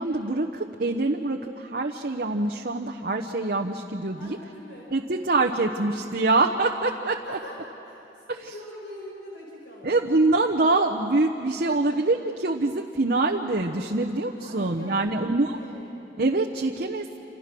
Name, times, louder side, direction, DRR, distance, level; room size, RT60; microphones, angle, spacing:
voice 1, 0.0-4.4 4.9-7.2 9.8-15.6 16.2-17.0, right 2 dB, 55° right, 2 dB, 1.0 m, -25 dB
voice 2, 4.2-4.9 7.2-10.1 14.3-16.0, left 1 dB, 75° left, -3 dB, 5.3 m, -43 dB
28.5 x 27.5 x 6.2 m, 2.9 s
head